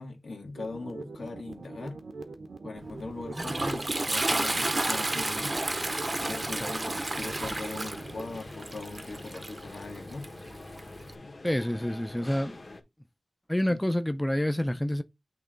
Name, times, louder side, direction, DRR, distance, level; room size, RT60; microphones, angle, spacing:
voice 1, 0.0-2.0 2.6-5.5 6.3-10.3 13.7-13.8, left 3 dB, 90° left, 1.8 m, -40 dB
sound 1, 0.5-8.4, right 3 dB, 85° right, 0.9 m, -43 dB
Toilet flush, 2.8-11.1, right 2 dB, 30° right, 0.6 m, -32 dB
sound 2, 5.1-12.8, left 2 dB, 50° left, 1.3 m, -46 dB
voice 2, 11.4-12.6 13.5-15.0, left 1 dB, 10° left, 0.4 m, -28 dB
8.5 x 3.1 x 3.8 m
wide cardioid pair, 95°, 0 cm